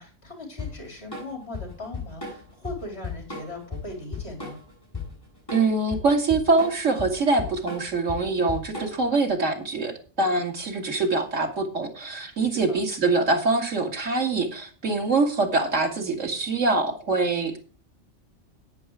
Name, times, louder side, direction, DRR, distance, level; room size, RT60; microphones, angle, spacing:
voice 1, 0.0-4.6 12.7-12.8, left 2 dB, 55° left, 2 dB, 4.2 m, -39 dB
Drum kit / Drum, 0.6-9.2, left 4 dB, 20° left, 8.2 m, -36 dB
voice 2, 5.5-17.6, right 3 dB, 90° right, 3 dB, 2.4 m, -24 dB
10.5 x 9.6 x 4.8 m, 0.37 s
omnidirectional pair, 1.3 m